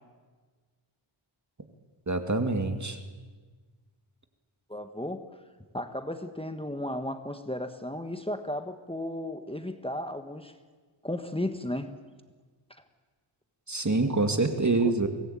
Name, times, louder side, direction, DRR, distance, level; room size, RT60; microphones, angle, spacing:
voice 1, 2.1-3.0 13.7-15.1, right 3 dB, 35° right, 7 dB, 2.2 m, -26 dB
voice 2, 4.7-5.2 5.7-10.5 11.0-11.9 14.6-14.9, left 1 dB, 10° left, 8 dB, 1.4 m, -34 dB
24.0 x 19.0 x 9.0 m, 1.4 s
wide cardioid pair, 75°, 49 cm